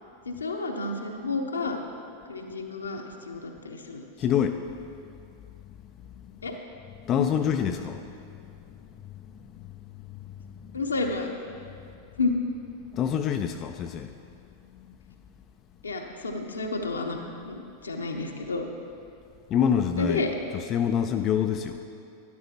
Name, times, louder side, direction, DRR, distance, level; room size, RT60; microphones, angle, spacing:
voice 1, 0.3-1.8 2.3-4.0 6.4-6.5 7.2-7.3 10.7-11.3 12.2-12.3 15.8-17.2 17.4-18.7 20.0-20.3, left 3 dB, 75° left, 3 dB, 0.9 m, -30 dB
voice 2, 4.2-4.6 7.1-8.0 9.6-9.7 12.9-14.1 19.5-20.3 20.5-21.8, left 8 dB, 30° left, 6 dB, 0.4 m, -26 dB
12.5 x 11.0 x 2.9 m, 2.5 s
figure-of-eight pair, 90°, 0 cm